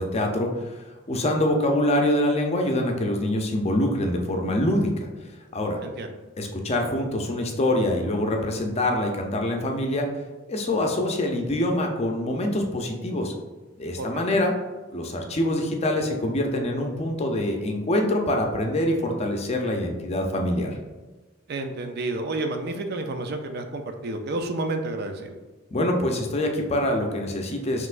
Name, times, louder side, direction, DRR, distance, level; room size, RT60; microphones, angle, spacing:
voice 1, 0.0-5.1 5.5-5.8 6.4-10.1 10.5-13.3 13.8-14.5 14.9-20.7 25.7-27.9, left 1 dB, 35° left, 2 dB, 0.6 m, -25 dB
voice 2, 5.8-6.1 14.0-14.2 21.5-25.3, right 2 dB, 55° right, 6 dB, 0.4 m, -30 dB
5.6 x 3.1 x 2.5 m, 1.2 s
head